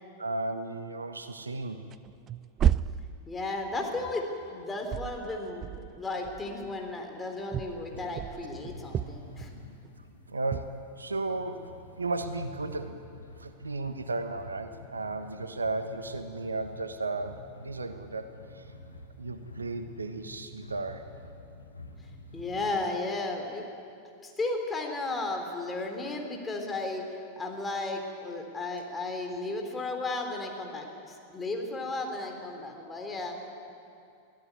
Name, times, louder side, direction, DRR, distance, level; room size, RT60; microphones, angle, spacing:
voice 1, 0.2-1.9 10.3-13.0 13.4-18.6 19.2-21.0, right 2 dB, 75° right, 9 dB, 1.3 m, -34 dB
sound 1, 1.5-1.6 1.9-4.5 4.8-6.9 7.5-9.9 10.5-10.8, right 9 dB, 30° right, 0.5 m, -32 dB
voice 2, 3.3-9.6 22.3-23.6 24.2-27.0 27.4-33.4, left 2 dB, 15° left, 2 dB, 3.8 m, -34 dB
sound 2, 7.7-22.7, left 2 dB, 80° left, 2.4 m, -48 dB
23.5 x 16.0 x 9.4 m, 2.6 s
figure-of-eight pair, 90°, 0 cm